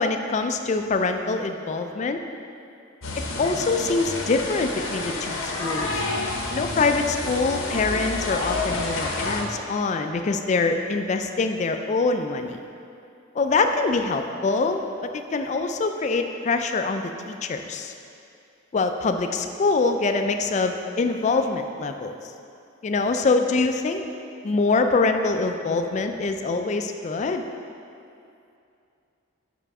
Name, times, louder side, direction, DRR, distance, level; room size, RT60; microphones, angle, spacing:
voice 1, 0.0-2.2 3.2-6.0 6.5-12.6 13.3-17.9 18.7-22.1 22.8-24.1 24.4-27.4, left 3 dB, 35° left, 6 dB, 0.3 m, -24 dB
sound 1, 3.0-9.4, left 2 dB, 80° left, 0.9 m, -29 dB
5.5 x 5.0 x 4.8 m, 2.6 s
head